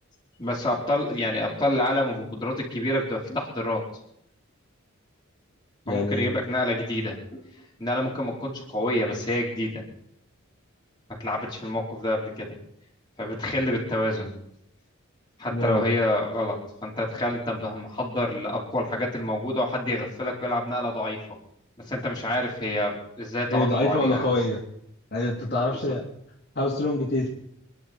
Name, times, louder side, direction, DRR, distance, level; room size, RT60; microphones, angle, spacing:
voice 1, 0.4-3.8 5.9-7.5 7.8-9.8 11.1-12.5 13.2-14.3 15.4-21.2 21.8-24.2 25.7-25.9, left 1 dB, 20° left, -3 dB, 4.4 m, -28 dB
voice 2, 5.9-6.3 15.5-15.8 23.5-24.6 25.1-26.0 26.5-27.3, left 2 dB, 50° left, -3 dB, 3.3 m, -25 dB
27.0 x 11.0 x 4.5 m, 0.73 s
head